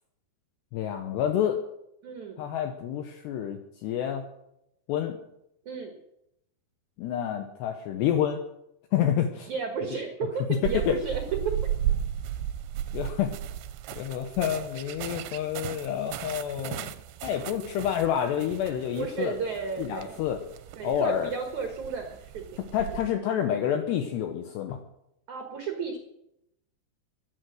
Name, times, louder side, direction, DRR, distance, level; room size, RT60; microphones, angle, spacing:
voice 1, 0.7-1.6 2.4-4.2 4.9-5.2 7.0-8.4 8.9-9.5 10.5-11.0 12.9-13.3 14.0-16.9 17.2-19.3 19.8-20.4 20.8-21.3 22.7-24.8, left 9 dB, 75° left, 5 dB, 2.8 m, -28 dB
voice 2, 2.0-2.4 5.7-6.0 9.5-11.2 19.0-20.1 20.8-22.4 25.3-26.0, right 5 dB, 60° right, 3 dB, 2.0 m, -33 dB
sound 1, 10.6-23.1, right 11 dB, 80° right, 3.0 m, -35 dB
16.5 x 11.5 x 6.4 m, 0.82 s
omnidirectional pair, 5.4 m